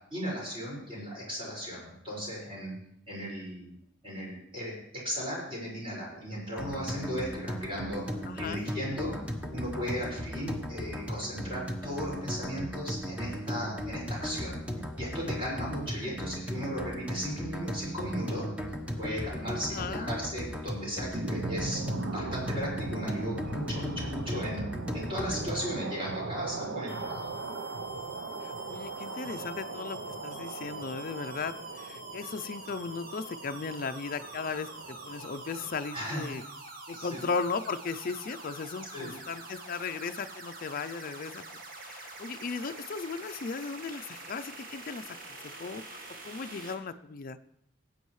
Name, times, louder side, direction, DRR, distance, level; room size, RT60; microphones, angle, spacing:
voice 1, 0.1-2.7 3.1-3.8 4.0-4.7 5.0-8.0 8.4-9.1 9.5-14.6 14.9-18.5 19.0-21.8 22.1-24.6 24.9-27.3 35.9-36.3 36.9-37.2 38.9-39.1, equal, 30° right, -5 dB, 5.4 m, -36 dB
sound 1, 6.6-25.8, equal, 5° right, 1.1 m, -37 dB
voice 2, 8.3-8.7 19.7-20.1 28.4-36.4 36.9-41.4 41.7-47.4, left 4 dB, 45° left, 9 dB, 0.5 m, -37 dB
sound 2, 21.1-36.2, right 3 dB, 70° right, 0.7 m, -39 dB
sound 3, 26.9-46.7, right 2 dB, 50° right, 1.5 m, -45 dB
18.5 x 8.5 x 3.2 m, 0.77 s
head